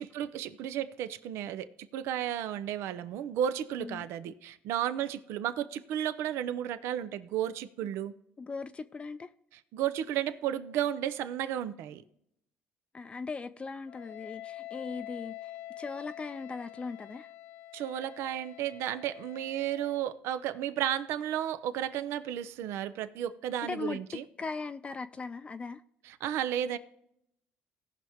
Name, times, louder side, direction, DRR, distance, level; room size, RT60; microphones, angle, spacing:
voice 1, 0.0-8.1 9.7-12.0 17.7-24.2 26.1-26.8, right 10 dB, 75° right, 0.6 m, -33 dB
voice 2, 8.4-9.3 12.9-15.5 15.8-17.3 23.6-24.0 24.4-25.8, left 4 dB, 25° left, 0.4 m, -39 dB
Wind instrument woodwind instrument, 13.9-20.0, left 14 dB, 80° left, 1.0 m, -46 dB
17.5 x 5.8 x 3.5 m
cardioid pair, 100°, 4 cm